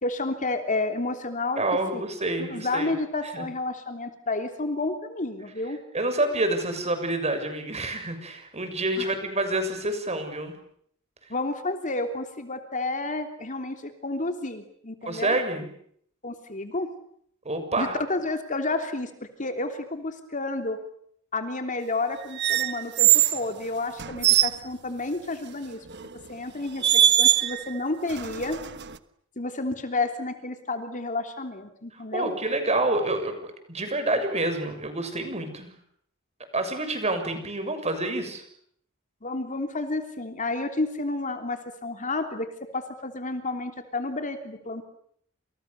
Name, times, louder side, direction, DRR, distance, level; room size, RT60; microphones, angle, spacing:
voice 1, 0.0-1.6 1.9-2.0 2.4-5.8 9.0-9.1 11.3-15.4 16.2-16.9 17.8-19.1 19.4-20.8 21.3-25.8 26.3-28.6 29.4-32.3 39.2-42.5 42.7-44.9, left 2 dB, 40° left, 6 dB, 3.2 m, -30 dB
voice 2, 1.6-3.0 3.2-3.5 5.9-10.5 15.1-15.7 17.5-18.0 32.1-35.7 36.5-38.4, right 2 dB, 30° right, 8 dB, 6.8 m, -28 dB
sound 1, 22.4-23.4 24.0-24.6 25.9-26.1 26.8-27.7 28.1-29.0, right 12 dB, 55° right, 1.4 m, -21 dB
29.5 x 28.5 x 7.0 m, 0.67 s
head